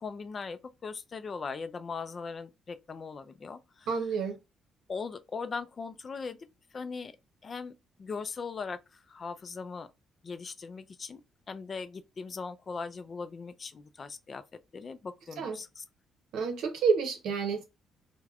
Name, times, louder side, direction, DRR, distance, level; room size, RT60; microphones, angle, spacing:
voice 1, 0.0-3.9 4.9-6.4 6.7-7.1 7.4-9.9 10.2-11.2 11.5-14.4 14.7-15.8, left 5 dB, 40° left, 0.3 m, -39 dB
voice 2, 3.9-4.4 15.4-15.6 16.3-17.6, right 5 dB, 85° right, 0.7 m, -29 dB
3.3 x 2.1 x 2.3 m
cardioid pair, 90°, 0 cm